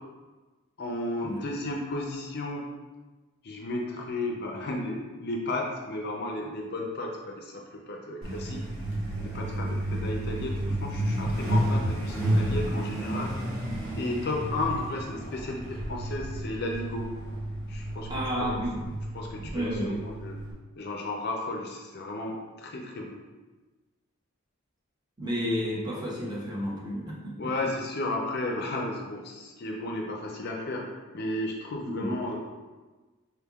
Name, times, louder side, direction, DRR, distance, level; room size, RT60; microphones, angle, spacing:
voice 1, 0.8-2.6 3.4-8.6 9.2-13.3 13.9-17.1 17.7-18.1 19.1-20.4 20.8-23.2 27.4-30.9 31.1-32.4, left 2 dB, 45° left, 0 dB, 0.4 m, -33 dB
Truck, 8.2-20.5, right 1 dB, 55° right, 1.0 m, -31 dB
voice 2, 18.1-18.9 19.4-20.0 25.2-27.3 31.8-32.1, equal, 20° right, -4 dB, 0.7 m, -31 dB
4.5 x 3.5 x 2.3 m, 1.3 s
head